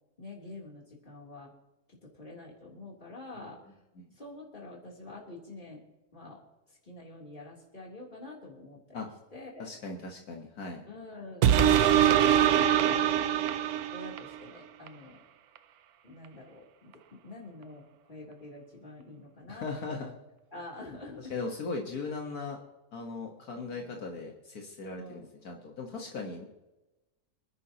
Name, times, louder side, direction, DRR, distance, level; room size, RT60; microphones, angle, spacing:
voice 1, 0.2-1.5 1.9-3.6 4.1-5.8 6.1-6.4 6.7-9.0 9.3-9.7 10.9-13.2 13.9-15.2 16.0-16.9 17.2-20.2 20.5-21.4 25.0-25.3, left 2 dB, 30° left, -3 dB, 3.4 m, -47 dB
voice 2, 9.6-10.9 19.5-20.1 21.3-22.6 22.9-26.5, left 3 dB, 70° left, 1 dB, 1.9 m, -38 dB
sound 1, 11.4-14.3 14.9-15.0, right 10 dB, 75° right, 1.2 m, -23 dB
26.5 x 10.5 x 2.9 m, 1.0 s
omnidirectional pair, 1.6 m